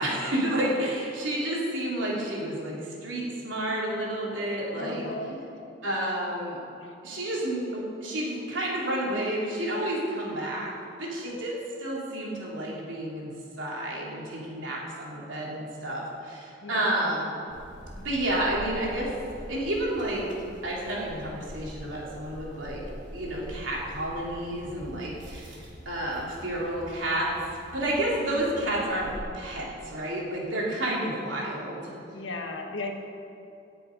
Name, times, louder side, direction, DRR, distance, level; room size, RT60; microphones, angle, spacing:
voice 1, 0.0-5.0 5.8-6.6 7.0-10.7 11.0-11.5 11.8-17.3 18.0-19.1 19.5-20.3 20.6-22.8 23.1-25.5 25.8-27.3 27.7-31.9, right 1 dB, 90° right, -4 dB, 3.1 m, -30 dB
voice 2, 4.7-5.4 6.8-7.0 11.2-11.4 16.6-17.1 32.1-32.9, left 2 dB, 80° left, 3 dB, 1.5 m, -36 dB
sound 1, 17.5-29.2, equal, 65° right, 3.0 m, -44 dB
18.0 x 6.9 x 5.2 m, 2.8 s
head